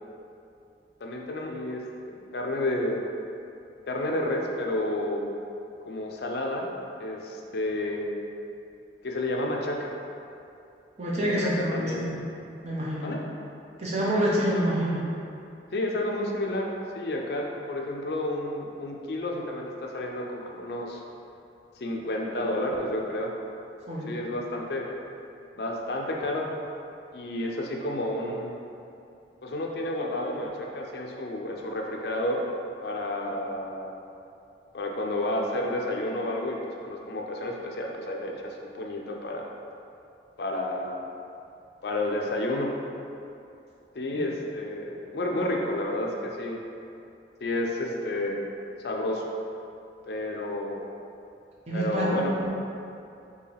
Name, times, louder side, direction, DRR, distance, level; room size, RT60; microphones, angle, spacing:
voice 1, 1.0-3.0 3.9-5.2 5.9-6.7 7.0-8.1 9.0-9.9 11.2-12.1 13.0-13.2 15.7-21.0 21.8-23.3 24.1-24.9 25.5-26.5 27.1-28.5 29.4-32.4 32.8-33.9 34.7-39.5 40.4-41.0 41.8-42.7 44.0-46.6 47.4-48.4 48.8-49.2 50.1-50.8 51.7-52.4, left 1 dB, 60° left, 0 dB, 0.5 m, -30 dB
voice 2, 11.0-12.2 12.6-13.1 13.8-15.0 23.9-24.1 51.7-52.2, right 1 dB, 35° right, -6 dB, 0.8 m, -27 dB
4.6 x 2.8 x 3.3 m, 2.7 s
head